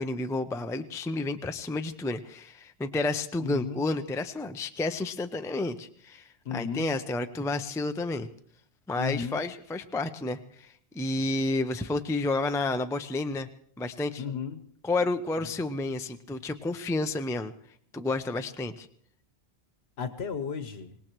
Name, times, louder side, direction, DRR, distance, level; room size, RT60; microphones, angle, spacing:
voice 1, 0.0-8.3 8.9-10.7 10.9-13.5 13.8-14.2 14.8-17.5 17.9-18.9, left 2 dB, 5° left, 8 dB, 0.3 m, -30 dB
voice 2, 3.4-3.8 6.4-6.9 9.0-9.4 14.2-14.6 15.4-15.5 20.0-21.0, left 6 dB, 75° left, 8 dB, 1.2 m, -34 dB
25.0 x 18.5 x 3.0 m, 0.65 s
omnidirectional pair, 1.1 m